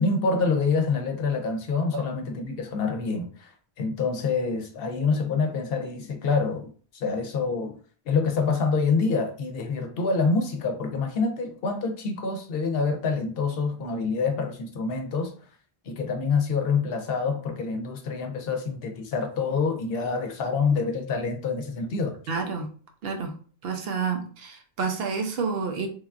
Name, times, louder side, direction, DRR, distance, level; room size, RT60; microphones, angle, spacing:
voice 1, 0.0-3.5 3.8-7.8 8.1-15.3 15.8-22.2, left 4 dB, 70° left, 0.7 m, -26 dB
voice 2, 22.3-22.7 23.0-23.3 23.6-25.9, right 5 dB, 70° right, 0.8 m, -29 dB
3.1 x 2.2 x 2.4 m
omnidirectional pair, 1.1 m